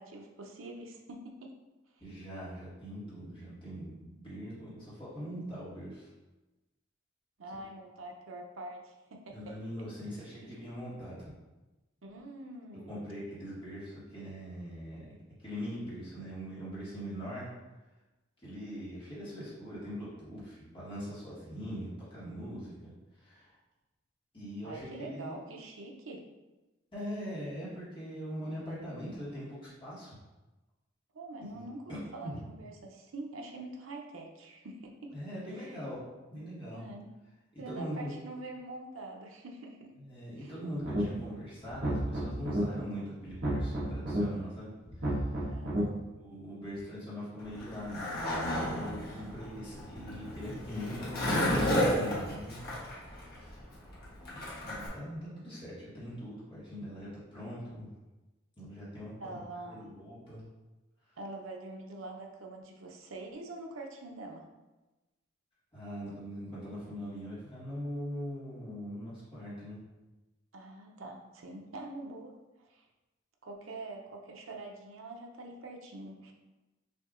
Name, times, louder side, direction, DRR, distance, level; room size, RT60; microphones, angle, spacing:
voice 1, 0.0-1.5 7.4-9.6 12.0-13.0 24.6-26.2 31.1-35.2 35.6-35.7 36.7-37.1 37.6-39.9 40.4-40.5 43.0-43.1 45.5-46.0 49.0-49.3 59.2-59.9 61.2-64.4 70.5-72.3 72.7-72.8 73.4-76.3, right 2 dB, 85° right, 1 dB, 0.7 m, -45 dB
voice 2, 2.0-6.1 9.3-11.3 12.7-15.1 15.4-17.5 18.4-23.6 24.3-25.4 26.9-30.2 31.5-32.4 35.1-36.0 36.3-36.8 37.5-38.2 40.0-45.5 46.1-48.0 48.3-52.7 53.1-53.7 54.6-57.9 58.5-60.4 61.1-61.2 65.7-69.8 73.7-73.8, equal, 25° left, -10 dB, 1.5 m, -42 dB
sound 1, 40.8-41.3 41.7-42.6 43.3-44.2 44.9-45.8, right 1 dB, 55° right, 1.2 m, -32 dB
Skateboard, 47.4-54.9, equal, 50° left, 1.3 m, -32 dB
6.1 x 2.7 x 2.5 m, 1.1 s
head